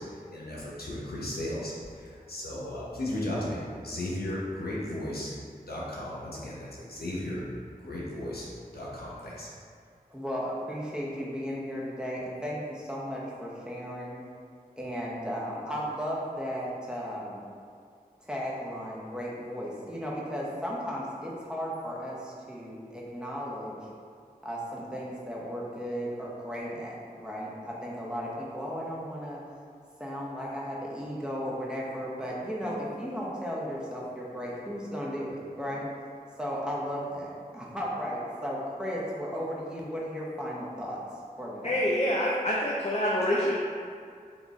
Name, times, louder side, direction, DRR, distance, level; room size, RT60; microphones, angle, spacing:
voice 1, 0.0-5.3 5.6-7.4 7.8-8.5 8.7-9.5, left 1 dB, 90° left, -6 dB, 0.9 m, -35 dB
voice 2, 10.1-14.2 14.8-17.4 18.2-23.8 24.4-29.4 30.0-35.8 36.4-41.0 41.4-41.8, equal, 5° right, -5 dB, 0.9 m, -35 dB
voice 3, 41.6-43.5, left 1 dB, 45° left, -4 dB, 0.5 m, -26 dB
4.0 x 2.9 x 3.6 m, 2.2 s
wide cardioid pair, 45°, 16 cm